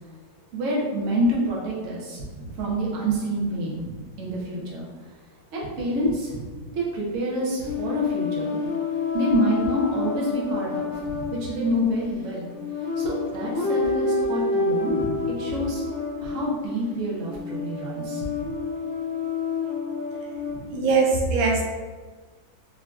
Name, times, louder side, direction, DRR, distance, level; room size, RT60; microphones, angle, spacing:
voice 1, 0.5-4.9 5.5-8.6 9.1-12.5 13.0-15.8 16.2-18.3 20.5-20.7, equal, 55° right, -5 dB, 1.0 m, -27 dB
sound 1, 7.6-20.6, left 4 dB, 35° right, 0.7 m, -29 dB
voice 2, 20.7-21.6, right 4 dB, 80° right, -1 dB, 1.3 m, -21 dB
4.6 x 2.8 x 2.3 m, 1.4 s
omnidirectional pair, 2.1 m